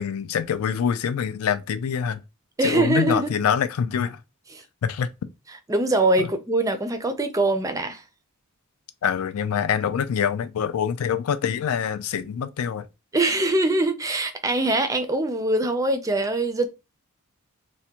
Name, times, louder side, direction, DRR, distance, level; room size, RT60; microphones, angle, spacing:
voice 1, 0.0-2.2 2.6-4.2 4.8-5.1 6.2-6.3 9.0-12.9, left 7 dB, 75° left, 0.4 m, -25 dB
voice 2, 2.6-3.3 4.5-4.6 5.7-8.0 13.1-16.7, right 2 dB, 15° right, 0.4 m, -23 dB
3.4 x 2.1 x 2.8 m
head